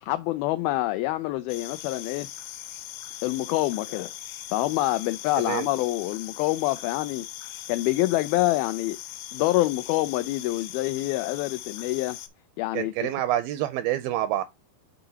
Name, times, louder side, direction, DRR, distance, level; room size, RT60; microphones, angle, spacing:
voice 1, 0.0-2.3 3.2-4.1 4.5-7.3 7.7-9.0 9.3-12.2 12.6-12.9, left 17 dB, 90° left, 2.1 m, -26 dB
sound 1, 1.5-12.3, left 13 dB, 70° left, 2.3 m, -40 dB
voice 2, 12.7-14.4, right 13 dB, 85° right, 2.2 m, -27 dB
11.5 x 3.9 x 2.8 m
omnidirectional pair, 4.8 m